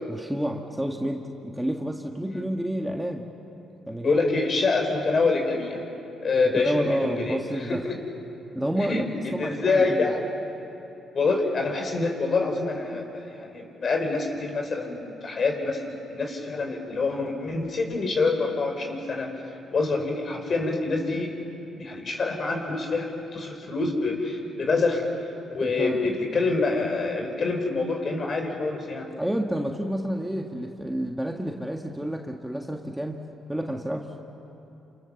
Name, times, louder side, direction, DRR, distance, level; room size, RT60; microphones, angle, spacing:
voice 1, 0.1-3.3 3.9-4.4 6.6-7.8 8.5-9.0 9.3-10.1 25.6-26.1 29.2-33.2 33.5-34.2, equal, 5° right, 1 dB, 1.8 m, -29 dB
voice 2, 4.0-5.8 6.2-7.4 7.7-7.9 8.9-10.2 11.1-19.3 19.7-21.3 21.8-25.0 25.5-29.1, left 3 dB, 45° left, 3 dB, 5.3 m, -26 dB
29.0 x 28.0 x 7.2 m, 3.0 s
cardioid pair, 90°, 0 cm